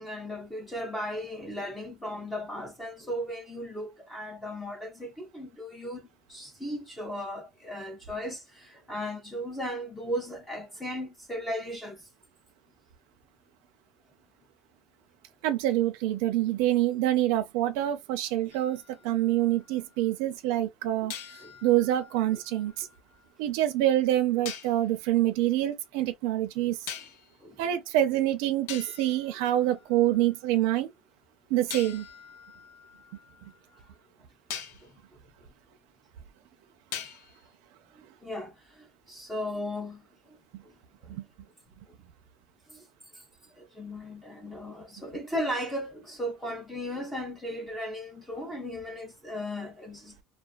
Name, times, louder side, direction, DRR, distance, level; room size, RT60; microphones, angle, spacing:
voice 1, 0.0-6.0 6.3-12.1 21.0-21.1 21.4-21.5 27.4-27.6 34.5-35.0 36.9-37.1 38.0-40.0 40.3-40.4 40.6-40.7 41.0-41.1 41.9-42.0 42.7-42.9 43.1-50.2, equal, 5° left, 0.5 m, -36 dB
voice 2, 15.4-21.1 21.6-22.9 23.4-26.9 27.6-30.9 31.5-32.1 33.4-33.5 41.1-41.2, right 13 dB, 70° right, 0.5 m, -26 dB
sound 1, 18.5-19.9 21.1-23.2 24.4-24.9 26.9-27.4 28.2-28.3 28.7-30.3 31.7-33.9 34.5-34.9 36.9-37.5, left 8 dB, 85° left, 0.6 m, -43 dB
2.3 x 2.2 x 2.4 m
cardioid pair, 175°, 0 cm